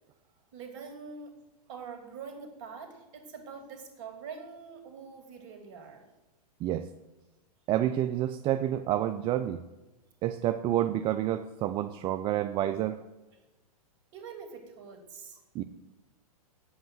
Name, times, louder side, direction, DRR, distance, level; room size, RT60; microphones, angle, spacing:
voice 1, 0.5-1.3 1.7-6.0 14.1-15.4, right 5 dB, 50° right, 4 dB, 2.7 m, -44 dB
voice 2, 7.7-9.6 10.2-13.0 15.5-15.6, right 12 dB, 30° right, 9 dB, 0.4 m, -29 dB
9.0 x 8.0 x 7.7 m, 1.1 s
hypercardioid pair, 120°, 19 cm